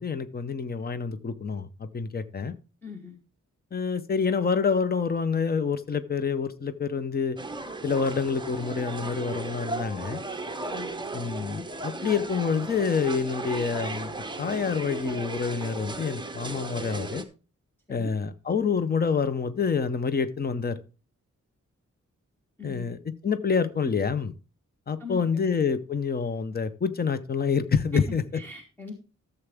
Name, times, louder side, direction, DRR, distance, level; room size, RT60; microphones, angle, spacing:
voice 1, 0.0-2.5 3.7-7.4 7.8-10.2 11.1-17.2 17.9-20.8 22.6-24.3 24.9-28.2, left 5 dB, 30° left, 12 dB, 0.7 m, -27 dB
voice 2, 2.8-3.2 10.7-11.2 17.9-18.1 22.6-23.0 25.0-25.5 27.9-28.0 28.3-28.9, left 3 dB, 5° left, -1 dB, 1.2 m, -39 dB
sound 1, 7.4-17.2, right 2 dB, 15° right, 0.8 m, -36 dB
13.0 x 7.0 x 3.4 m, 0.33 s
wide cardioid pair, 180°, 31 cm